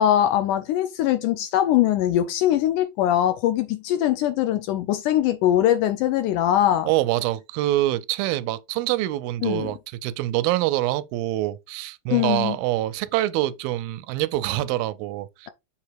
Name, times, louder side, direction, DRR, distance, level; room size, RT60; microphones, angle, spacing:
voice 1, 0.0-6.9 9.4-9.7 12.1-12.6, left 12 dB, 80° left, 1.9 m, -21 dB
voice 2, 6.8-15.5, right 15 dB, 90° right, 2.4 m, -25 dB
7.4 x 3.4 x 4.6 m
omnidirectional pair, 4.1 m